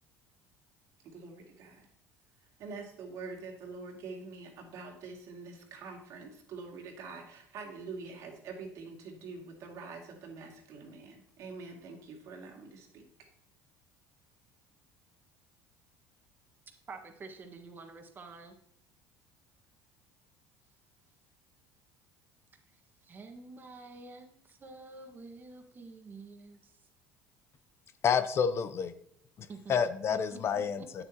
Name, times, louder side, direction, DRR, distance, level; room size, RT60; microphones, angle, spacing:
voice 1, 1.0-1.9 2.6-13.1, right 4 dB, 60° right, 1 dB, 2.3 m, -45 dB
voice 2, 16.9-18.5 22.7-26.8 29.5-29.7 30.1-31.0, right 3 dB, 30° right, 5 dB, 1.5 m, -49 dB
voice 3, 28.0-28.9 29.4-31.0, left 7 dB, 45° left, 11 dB, 0.7 m, -29 dB
8.9 x 7.4 x 2.9 m, 0.70 s
supercardioid pair, 90°, 6 cm